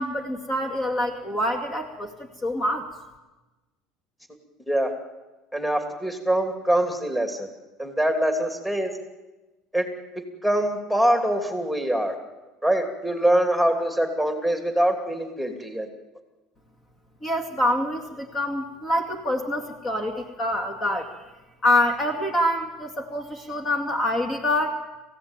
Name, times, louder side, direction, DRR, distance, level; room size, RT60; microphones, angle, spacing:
voice 1, 0.0-2.1 2.4-2.9 17.2-21.1 21.6-24.7, left 1 dB, 30° left, 4 dB, 2.5 m, -26 dB
voice 2, 5.5-7.5 7.8-8.9 9.7-9.9 10.2-12.1 12.6-15.9, right 1 dB, 5° left, 4 dB, 2.9 m, -24 dB
27.5 x 16.0 x 9.0 m, 1.1 s
cardioid pair, 125°, 0 cm